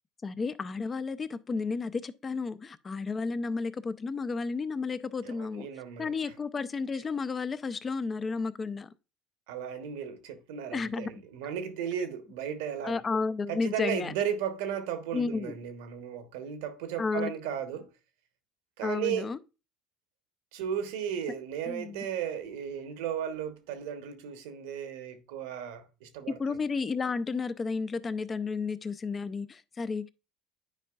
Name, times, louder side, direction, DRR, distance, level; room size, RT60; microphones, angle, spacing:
voice 1, 0.2-5.7 6.0-8.9 10.7-11.1 12.8-14.1 15.1-15.6 17.0-17.3 18.8-19.4 21.7-22.0 26.3-30.1, left 4 dB, 30° left, 0.5 m, -32 dB
voice 2, 5.2-6.1 9.5-13.0 13.5-17.9 18.8-19.3 20.5-26.4, right 8 dB, 75° right, 1.0 m, -35 dB
9.9 x 4.6 x 2.3 m
hypercardioid pair, 80°, 0 cm